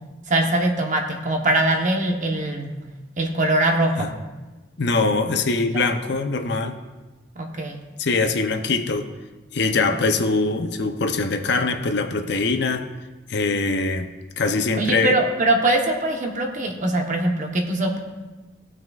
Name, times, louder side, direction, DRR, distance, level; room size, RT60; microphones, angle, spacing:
voice 1, 0.3-2.7 3.2-4.1 5.7-5.8 7.4-7.8 14.8-18.0, right 1 dB, 40° right, 3 dB, 1.0 m, -22 dB
voice 2, 4.8-6.8 8.0-9.1 9.5-12.9 13.3-15.2, left 3 dB, 60° left, 7 dB, 0.6 m, -23 dB
17.5 x 6.2 x 2.4 m, 1.2 s
head